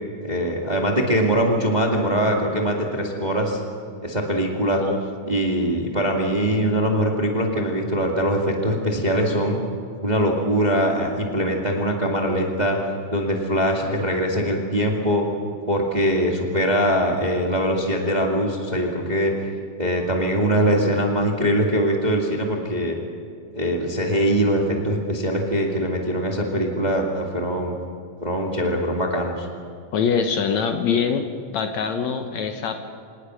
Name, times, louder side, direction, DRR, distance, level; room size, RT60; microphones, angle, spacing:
voice 1, 0.2-3.6 4.0-4.8 5.3-9.6 10.0-12.8 13.1-15.3 15.7-19.3 19.8-23.0 23.5-27.7 28.2-29.5, equal, 15° right, 1 dB, 1.6 m, -22 dB
voice 2, 29.9-31.2 31.5-32.8, left 6 dB, 65° left, 6 dB, 2.2 m, -23 dB
26.5 x 19.0 x 6.3 m, 2.3 s
omnidirectional pair, 3.8 m